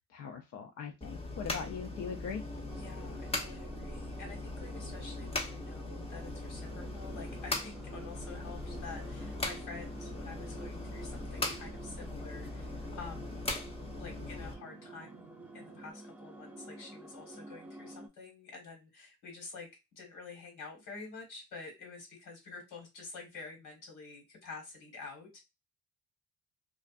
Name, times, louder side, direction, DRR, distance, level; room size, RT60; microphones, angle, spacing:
voice 1, 0.1-2.4, left 6 dB, 55° left, 0.5 m, -40 dB
sound 1, 1.0-14.5, left 2 dB, 20° left, 0.7 m, -40 dB
sound 2, 1.6-15.9, right 7 dB, 55° right, 0.6 m, -55 dB
voice 2, 2.7-13.5 14.0-25.4, left 4 dB, 80° left, 1.4 m, -49 dB
sound 3, 2.7-18.1, right 1 dB, 5° right, 0.3 m, -50 dB
2.4 x 2.4 x 2.4 m
cardioid pair, 90°, 30 cm